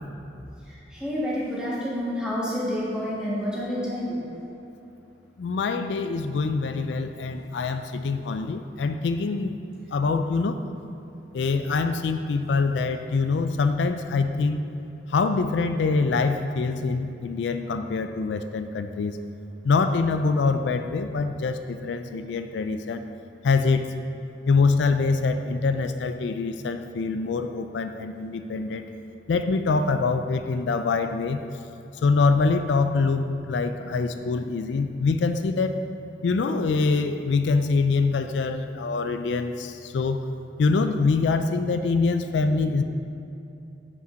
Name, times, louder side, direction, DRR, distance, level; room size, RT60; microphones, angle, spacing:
voice 1, 0.7-4.2, equal, 5° right, -7 dB, 1.5 m, -29 dB
voice 2, 5.4-9.6 9.9-10.6 11.3-14.6 15.1-19.2 19.6-23.0 23.4-23.9 24.5-28.8 29.3-31.4 32.0-35.8 36.2-40.2 40.6-42.8, left 4 dB, 85° left, 8 dB, 0.4 m, -24 dB
5.4 x 5.1 x 6.3 m, 2.7 s
head